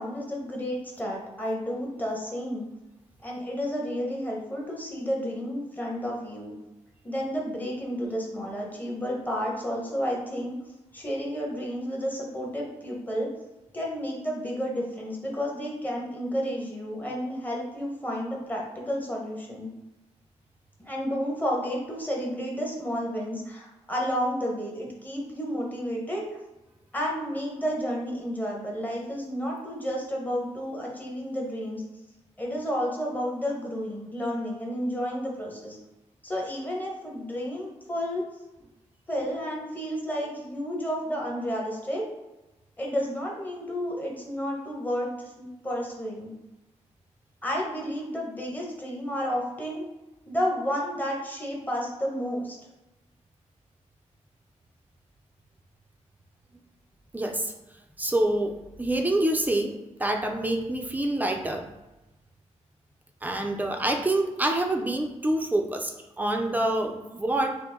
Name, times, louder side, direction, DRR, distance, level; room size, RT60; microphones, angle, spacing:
voice 1, 0.0-2.7 3.2-6.5 7.0-10.5 10.9-13.3 13.7-19.7 20.8-26.3 26.9-31.8 32.4-35.8 36.2-38.2 39.1-42.0 42.8-46.4 47.4-49.8 50.3-52.6, equal, 15° left, -2 dB, 1.1 m, -31 dB
voice 2, 57.1-57.5 58.0-59.7 60.0-61.6 63.2-67.6, right 1 dB, 15° right, 3 dB, 0.5 m, -26 dB
4.7 x 2.1 x 3.8 m, 1.0 s
cardioid pair, 85°, 13 cm